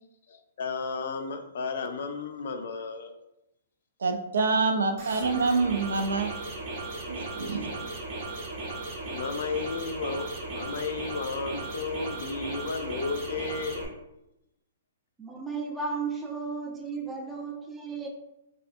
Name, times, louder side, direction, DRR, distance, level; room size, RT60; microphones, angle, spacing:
voice 1, 0.3-3.1 7.4-7.8 9.0-13.9, left 4 dB, 65° left, 6 dB, 0.3 m, -33 dB
voice 2, 4.0-6.3 7.1-7.7, right 4 dB, 85° right, 5 dB, 0.4 m, -26 dB
sound 1, 5.0-13.9, right 2 dB, 45° right, 0.7 m, -36 dB
voice 3, 15.2-18.1, right 4 dB, 10° right, 1 dB, 0.4 m, -34 dB
2.4 x 2.3 x 2.5 m, 0.88 s
hypercardioid pair, 145°, 0 cm